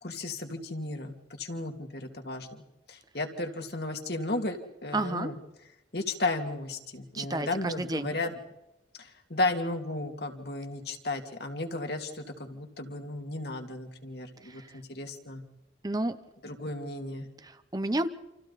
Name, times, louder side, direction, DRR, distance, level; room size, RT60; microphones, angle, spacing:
voice 1, 0.0-2.6 2.9-5.3 5.9-8.3 9.0-15.4 16.4-17.3, left 2 dB, 60° left, 4 dB, 2.5 m, -34 dB
voice 2, 4.9-5.3 7.1-8.1 14.4-14.8 15.8-16.2 17.4-18.1, right 2 dB, 20° right, 11 dB, 0.9 m, -31 dB
29.5 x 27.5 x 4.2 m, 0.95 s
head